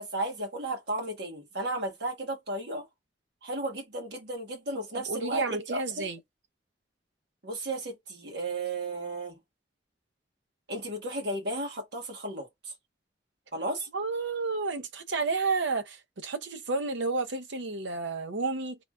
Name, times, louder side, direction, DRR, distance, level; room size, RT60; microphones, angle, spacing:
voice 1, 0.0-2.9 3.4-6.1 7.4-9.4 10.7-12.5 13.5-13.9, right 1 dB, 65° right, 1.6 m, -34 dB
voice 2, 4.9-6.2 13.9-18.8, right 4 dB, 85° right, 0.7 m, -31 dB
3.5 x 2.9 x 2.3 m
head